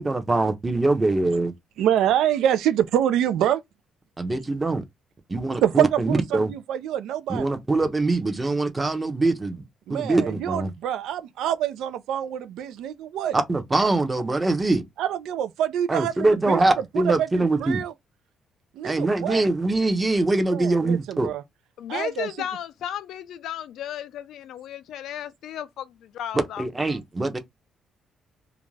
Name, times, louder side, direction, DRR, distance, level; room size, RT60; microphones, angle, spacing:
voice 1, 0.0-1.5 4.2-4.8 5.3-6.5 7.3-9.6 9.9-10.7 13.3-14.8 15.9-17.8 18.8-21.3 26.6-27.4, right 2 dB, 20° right, 0.6 m, -23 dB
voice 2, 1.8-3.6 5.6-7.5 9.9-13.4 15.0-17.9 18.7-19.4 20.5-21.4 21.9-22.3, right 10 dB, 85° right, 0.4 m, -26 dB
voice 3, 21.8-26.6 26.9-27.0, left 10 dB, 75° left, 0.3 m, -34 dB
2.4 x 2.1 x 3.1 m
cardioid pair, 115°, 0 cm